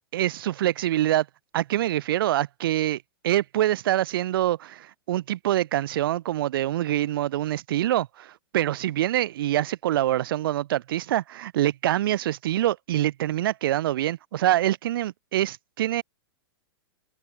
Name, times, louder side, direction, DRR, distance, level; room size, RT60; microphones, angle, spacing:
voice 1, 0.1-1.3 1.5-16.0, right 13 dB, 60° right, 2.1 m, -25 dB
hypercardioid pair, 155°, 13 cm